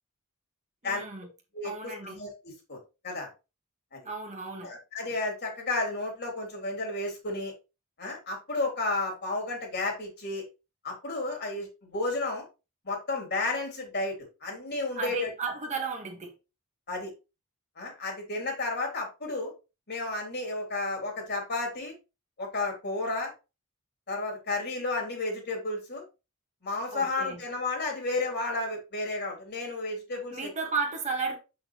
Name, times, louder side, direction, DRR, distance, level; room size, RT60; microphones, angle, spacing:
voice 1, 0.8-1.3 1.6-2.2 4.0-4.7 14.9-16.3 26.9-27.4 30.3-31.4, right 4 dB, 35° right, 1.8 m, -33 dB
voice 2, 1.5-2.8 3.0-3.3 3.9-4.0 4.6-7.5 8.0-10.4 10.8-12.4 12.8-14.1 14.4-15.3 16.9-17.1 17.8-19.5 19.9-21.9 22.4-23.3 24.1-26.0 26.6-30.5, left 2 dB, 50° left, 3.4 m, -32 dB
7.4 x 6.1 x 3.1 m
head